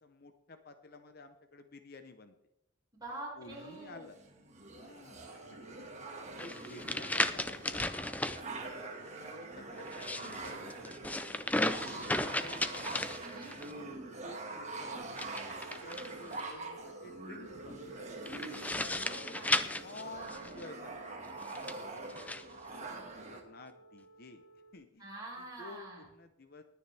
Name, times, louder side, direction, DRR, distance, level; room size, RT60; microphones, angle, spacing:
voice 1, 0.0-2.4 3.4-4.2 4.7-6.0 6.4-7.9 9.2-11.1 11.8-12.9 13.6-13.9 14.2-15.2 15.7-18.1 19.2-19.4 19.8-21.0 21.5-23.0 23.3-24.4 24.7-25.1 25.4-26.6, left 2 dB, 50° left, 8 dB, 0.8 m, -52 dB
voice 2, 2.9-4.1 13.2-13.5 18.9-19.7 25.0-26.0, right 2 dB, 20° right, -4 dB, 4.9 m, -46 dB
sound 1, 3.5-23.4, right 3 dB, 35° right, 1.7 m, -45 dB
sound 2, 5.2-24.7, right 2 dB, 80° left, 2.5 m, -56 dB
sound 3, 6.4-8.4 9.8-13.7 15.1-16.4 18.3-20.7 21.4-22.4, left 2 dB, 5° left, 0.5 m, -35 dB
19.5 x 9.8 x 3.4 m, 0.82 s
head